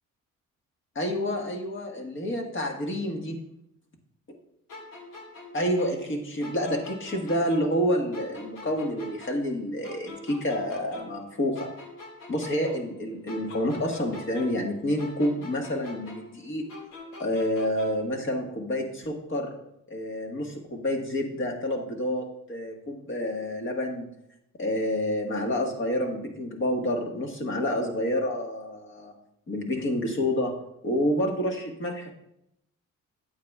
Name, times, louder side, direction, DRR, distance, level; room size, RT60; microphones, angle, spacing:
voice 1, 0.9-3.4 5.5-11.7 12.3-16.7 17.2-19.5 19.9-24.1 24.6-29.1 29.5-30.5 30.8-32.1, left 1 dB, 40° left, 2 dB, 1.6 m, -28 dB
sound 1, 4.7-7.8 8.1-11.3 11.5-14.7 15.0-18.1, left 2 dB, 85° left, 2.1 m, -44 dB
8.8 x 8.7 x 2.4 m, 0.79 s
cardioid pair, 90°, 30 cm